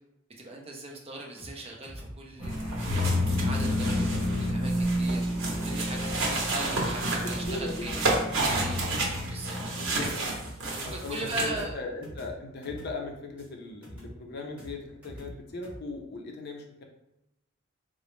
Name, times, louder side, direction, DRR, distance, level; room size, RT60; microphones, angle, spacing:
voice 1, 0.4-5.2 5.6-8.0 8.6-8.9 9.3-9.9 10.7-11.8, right 2 dB, 30° right, 0 dB, 0.5 m, -39 dB
sound 1, 1.4-15.8, equal, 10° right, 1.4 m, -46 dB
sound 2, 2.4-10.1, left 1 dB, 25° left, 1.3 m, -30 dB
sound 3, 2.5-11.6, right 2 dB, 75° right, 0.8 m, -31 dB
voice 2, 7.2-8.0 8.7-8.9 9.7-10.3 10.8-16.8, left 3 dB, 50° left, 2 dB, 0.5 m, -38 dB
3.8 x 2.0 x 3.0 m, 0.88 s
head